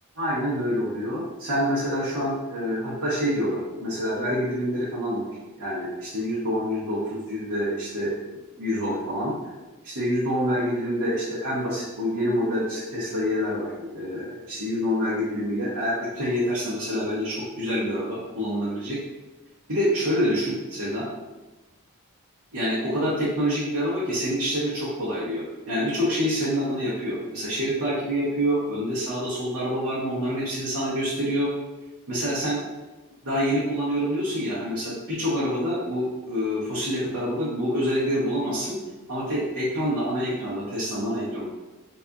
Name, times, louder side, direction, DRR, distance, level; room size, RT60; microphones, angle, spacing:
voice 1, 0.2-5.3 5.6-8.2 8.6-9.5 9.8-19.0 19.7-21.1 22.5-31.5 32.1-32.6 33.2-38.7 39.1-41.4, equal, 90° right, -10 dB, 1.0 m, -27 dB
4.1 x 2.5 x 2.3 m, 1.1 s
head